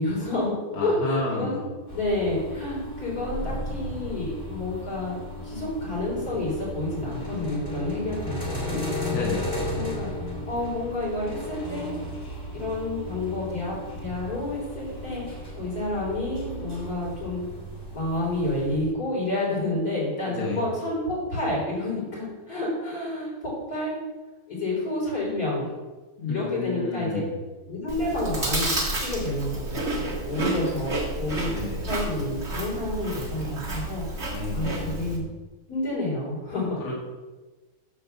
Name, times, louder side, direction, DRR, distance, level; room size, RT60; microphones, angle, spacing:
voice 1, 0.0-1.5 1.9-5.2 5.4-8.8 9.7-10.1 10.5-11.9 12.5-17.4 17.9-24.0 24.5-25.7 26.3-27.2 27.6-31.5 31.8-34.0 34.5-35.2 35.7-36.8, left 2 dB, 40° left, -5 dB, 4.4 m, -29 dB
voice 2, 0.7-1.7 9.1-9.6 20.3-20.6 26.2-27.4 31.5-31.9 34.3-35.1 36.8-36.9, left 3 dB, 85° left, -4 dB, 2.5 m, -31 dB
sound 1, 1.9-18.9, left 1 dB, 15° left, 2.3 m, -35 dB
Chewing mastication, 27.9-35.2, right 2 dB, 35° right, 1.9 m, -30 dB
10.0 x 4.7 x 6.9 m, 1.2 s
omnidirectional pair, 2.4 m